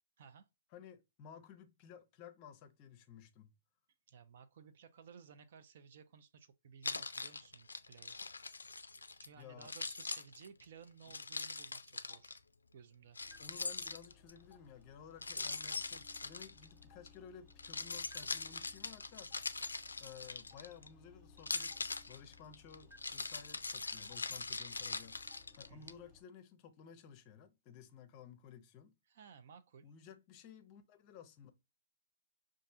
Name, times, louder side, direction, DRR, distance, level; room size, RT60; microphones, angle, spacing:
voice 1, 0.2-0.5 4.1-8.2 8.9-12.4 12.7-13.2 25.7-26.0 29.1-29.9, right 7 dB, 55° right, 0.5 m, -58 dB
voice 2, 0.7-3.5 9.3-9.7 13.4-19.5 20.0-25.2 25.6-28.9 29.8-31.5, left 8 dB, 35° left, 0.6 m, -55 dB
Keys jangling, 6.8-9.3 9.6-12.4 13.2-14.4 15.2-17.1 17.5-20.9 21.4-25.9, left 3 dB, 85° left, 0.3 m, -42 dB
Stream, 12.1-12.2 13.3-13.4 14.5-14.6 15.7-15.8 16.9-17.0 18.1-18.2 19.3-19.4 20.5-20.6 21.7-21.8 22.9-23.0 24.1-24.2 25.3-25.4, left 2 dB, 20° right, 1.1 m, -61 dB
sound 1, 13.2-26.2, left 4 dB, 10° left, 1.0 m, -63 dB
5.3 x 2.5 x 2.5 m
hypercardioid pair, 130°, 0 cm